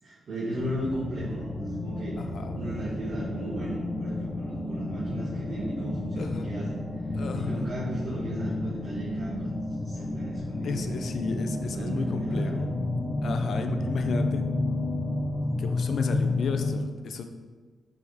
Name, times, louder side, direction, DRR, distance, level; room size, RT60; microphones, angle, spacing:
voice 1, 0.0-2.2 2.5-9.5 9.8-11.0 11.7-12.6, right 1 dB, 70° right, -8 dB, 1.7 m, -36 dB
sound 1, 0.5-16.7, left 2 dB, 35° left, 1.2 m, -31 dB
voice 2, 2.2-2.6 6.2-6.5 7.1-7.7 10.6-12.7 13.2-14.5 15.6-17.3, left 4 dB, 65° left, 7 dB, 0.5 m, -34 dB
7.5 x 4.2 x 3.5 m, 1.4 s
supercardioid pair, 55°, 0 cm